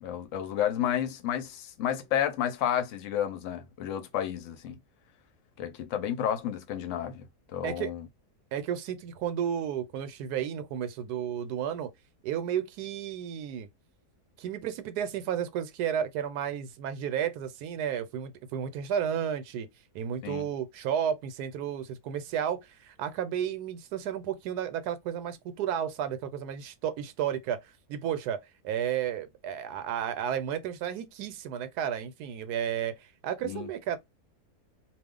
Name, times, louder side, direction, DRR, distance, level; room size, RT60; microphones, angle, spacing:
voice 1, 0.0-4.8 5.6-7.3 7.5-8.0 20.2-20.5 33.4-33.7, left 10 dB, 65° left, 0.9 m, -31 dB
voice 2, 8.5-11.9 12.2-13.7 14.4-19.7 19.9-34.0, right 9 dB, 80° right, 1.1 m, -32 dB
2.4 x 2.3 x 3.6 m
omnidirectional pair, 1.7 m